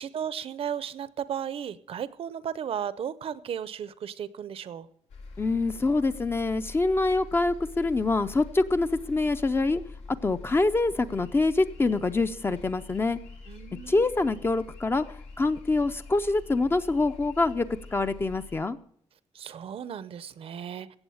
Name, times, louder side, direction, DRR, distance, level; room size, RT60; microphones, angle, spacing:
voice 1, 0.0-4.9 13.5-14.1 19.3-21.0, right 8 dB, 55° right, 16 dB, 0.6 m, -35 dB
sound 1, 5.1-18.6, left 3 dB, 90° left, 2.5 m, -45 dB
voice 2, 5.4-9.8 10.2-13.2 13.9-15.0 15.4-18.8, left 3 dB, 20° left, 11 dB, 0.5 m, -25 dB
17.0 x 7.0 x 7.1 m, 0.64 s
wide cardioid pair, 150°, 11 cm